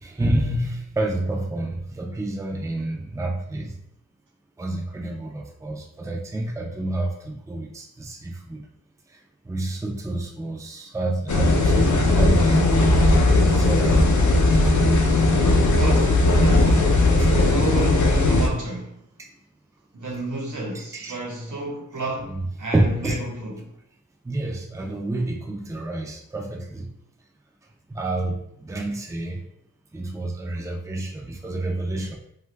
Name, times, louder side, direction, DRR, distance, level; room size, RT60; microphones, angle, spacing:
voice 1, 0.0-3.7 4.6-8.6 9.5-12.7 13.3-14.0 14.3-14.5 15.2-15.7 17.2-17.3 20.7-21.2 23.0-23.2 24.2-26.9 27.9-29.4 29.9-32.1, right 1 dB, 10° right, 0.4 m, -29 dB
sound 1, 11.3-18.5, left 2 dB, 70° left, 0.6 m, -18 dB
voice 2, 15.8-17.0 17.5-19.0 19.9-23.7, right 2 dB, 75° right, 0.9 m, -31 dB
3.0 x 2.3 x 3.2 m
wide cardioid pair, 90°, 31 cm